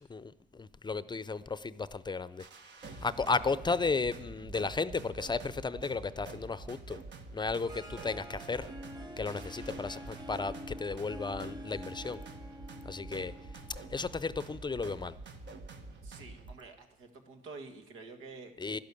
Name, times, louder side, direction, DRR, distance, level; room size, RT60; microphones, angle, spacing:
voice 1, 0.0-2.5 2.8-7.0 7.3-8.7 9.2-12.2 12.8-13.3 13.9-15.2 18.6-18.8, left 4 dB, 20° left, 16 dB, 0.6 m, -34 dB
sound 1, 2.4-16.5, right 3 dB, 65° right, 1.7 m, -47 dB
Harp, 7.4-14.5, equal, 20° right, 1.7 m, -47 dB
voice 2, 16.0-18.8, right 3 dB, 90° right, 5 dB, 2.0 m, -49 dB
12.0 x 12.0 x 8.4 m, 0.88 s
cardioid pair, 90°, 20 cm